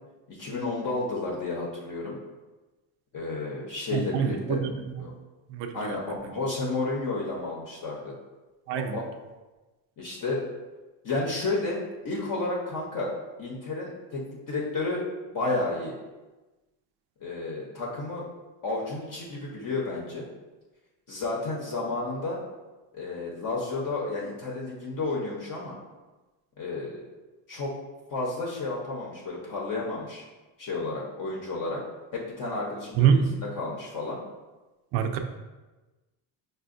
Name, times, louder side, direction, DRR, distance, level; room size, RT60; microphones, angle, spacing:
voice 1, 0.3-2.2 3.1-4.6 5.0-5.1 5.7-8.1 8.7-9.1 10.0-10.5 11.0-11.8 12.0-13.1 13.4-15.9 17.2-18.2 18.6-20.3 21.1-22.4 22.9-25.8 26.6-27.0 27.5-27.7 28.1-30.3 30.6-31.8 32.1-34.2, left 3 dB, 40° left, -3 dB, 0.8 m, -31 dB
voice 2, 3.9-4.7 5.0-5.1 5.5-5.9 8.7-9.0 33.0-33.3 34.9-35.2, right 7 dB, 60° right, 6 dB, 0.5 m, -25 dB
5.2 x 2.2 x 2.5 m, 1.2 s
supercardioid pair, 85°, 49 cm